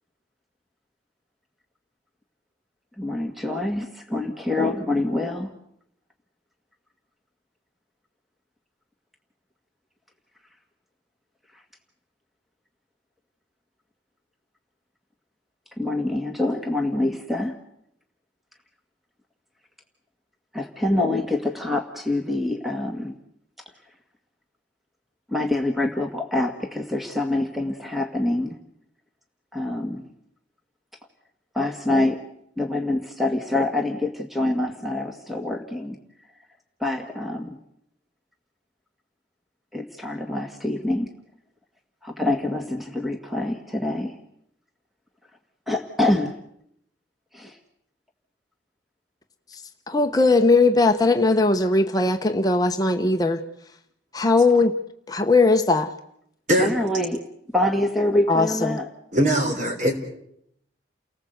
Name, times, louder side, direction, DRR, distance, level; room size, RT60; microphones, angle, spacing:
voice 1, 3.0-5.5 15.8-17.6 20.5-23.1 25.3-28.6 29.5-30.1 31.5-32.2 32.6-36.0 36.8-37.6 39.7-41.1 42.0-44.2 45.7-46.3 47.3-47.6 56.6-57.2 57.5-58.9, left 2 dB, ahead, 3 dB, 1.7 m, -25 dB
voice 2, 49.9-53.4 54.1-54.8 55.1-55.9 58.3-58.8, left 3 dB, 20° left, 5 dB, 0.9 m, -19 dB
voice 3, 59.1-59.9, equal, 40° right, 4 dB, 4.5 m, -21 dB
29.5 x 19.0 x 8.0 m, 0.74 s
head